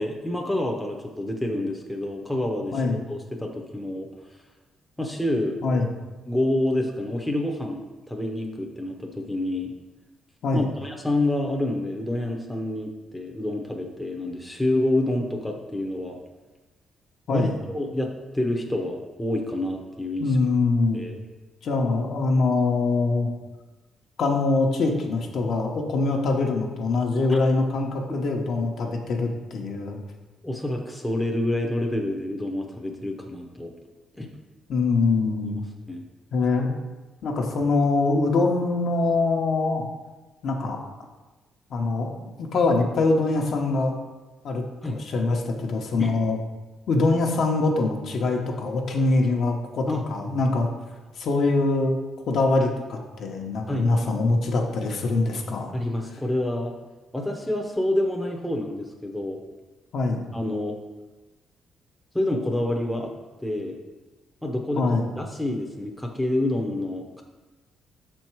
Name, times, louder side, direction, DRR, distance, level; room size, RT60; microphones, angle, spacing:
voice 1, 0.0-2.8 3.1-4.1 5.0-5.6 6.3-9.7 10.5-16.2 17.3-20.4 20.9-21.1 27.3-27.4 30.4-33.7 34.1-34.3 35.5-35.6 35.9-36.0 44.8-45.0 46.0-46.1 49.9-50.0 53.7-53.9 55.7-56.7 57.1-59.4 60.3-60.8 62.1-63.1 63.4-63.8 64.4-64.9 65.2-67.2, left 1 dB, 5° left, 1 dB, 0.7 m, -28 dB
voice 2, 2.7-3.0 5.6-5.9 10.4-10.7 17.3-17.6 20.2-21.0 21.6-23.3 24.2-30.0 34.7-35.6 36.3-36.7 37.2-39.8 40.4-40.8 41.7-42.1 42.4-44.0 44.4-46.4 46.9-50.7 51.2-51.9 52.3-55.7 59.9-60.3 64.7-65.1, left 3 dB, 55° left, 1 dB, 0.9 m, -23 dB
6.5 x 4.5 x 4.6 m, 1.2 s
cardioid pair, 140°, 0 cm